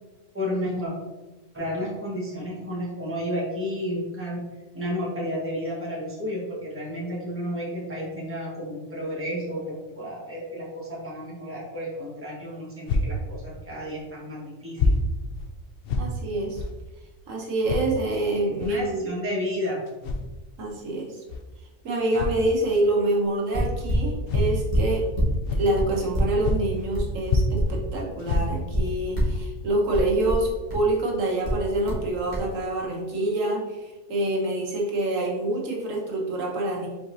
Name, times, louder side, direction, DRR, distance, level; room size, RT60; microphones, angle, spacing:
voice 1, 0.3-0.9 1.5-4.5 4.7-15.0 18.6-19.8, equal, 10° right, -5 dB, 1.1 m, -32 dB
sound 1, 12.8-13.1 13.9-14.0 14.7-15.0 15.3-15.5 15.8-16.1 16.5-16.7 17.6-17.9 18.6-18.8 19.9-20.3 21.3-21.4 22.1-22.4 23.5-23.6 24.3-24.5 24.9-25.1 25.4-26.1 26.4-26.9 27.2-27.8 28.2-28.8 29.3-29.4 29.9-30.0, left 2 dB, 60° left, 0.6 m, -26 dB
voice 2, 16.0-16.6 17.3-19.1 20.6-21.2 21.8-25.1 25.5-36.9, right 1 dB, 80° right, -1 dB, 1.3 m, -26 dB
sound 2, 23.5-25.4 25.7-28.0 28.3-29.4 29.9-30.9 31.4-32.0 32.3-32.5, equal, 45° left, 1.6 m, -26 dB
5.1 x 3.9 x 2.6 m, 1.2 s
omnidirectional pair, 1.3 m